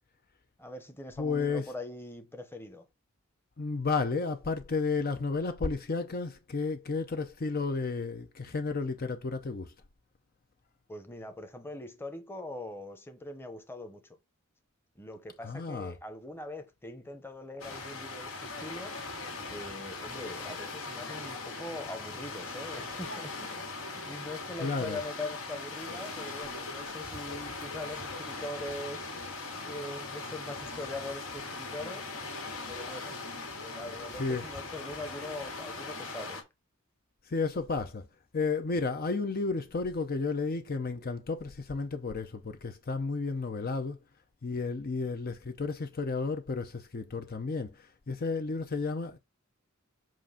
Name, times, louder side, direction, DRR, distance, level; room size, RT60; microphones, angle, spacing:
voice 1, 0.6-2.9 10.9-14.2 14.9-19.0 19.5-23.5 23.9-29.1 29.6-32.1 32.7-33.2 33.6-36.4, left 2 dB, 10° left, 0.9 m, -42 dB
voice 2, 1.2-1.6 3.6-9.7 15.4-15.9 24.6-25.0 34.2-34.4 37.3-38.1 38.3-44.0 44.4-49.2, left 4 dB, 45° left, 0.6 m, -32 dB
sound 1, 17.6-36.4, left 3 dB, 80° left, 2.1 m, -40 dB
7.6 x 2.6 x 5.6 m
head